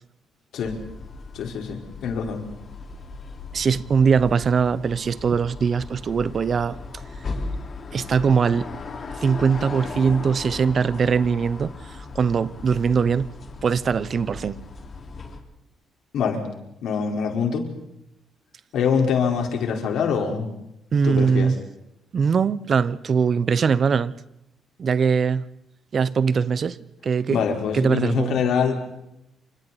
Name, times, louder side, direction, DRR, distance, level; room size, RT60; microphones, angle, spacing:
sound 1, 0.6-15.4, left 3 dB, 45° left, 4.6 m, -37 dB
voice 1, 1.3-2.4 16.1-16.4 16.8-17.7 18.7-20.5 21.0-21.5 27.3-28.7, left 6 dB, 75° left, 4.5 m, -24 dB
voice 2, 3.5-6.8 7.9-8.7 9.2-11.7 12.1-13.3 13.6-14.6 20.9-21.6 22.1-24.1 24.8-25.4 25.9-26.8 27.0-27.5 27.7-28.4, right 6 dB, 45° right, 1.0 m, -21 dB
29.5 x 26.5 x 4.3 m
cardioid pair, 90°, 0 cm